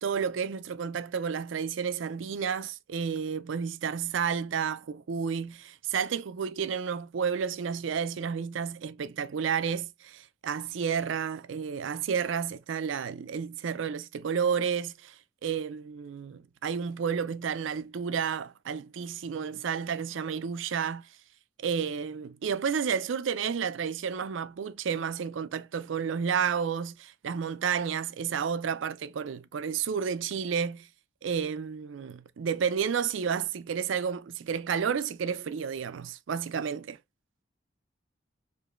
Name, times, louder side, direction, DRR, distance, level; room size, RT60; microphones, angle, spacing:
voice 1, 0.0-21.0 21.6-30.9 31.2-37.0, right 7 dB, 80° right, 0.4 m, -31 dB
4.8 x 2.6 x 2.4 m
head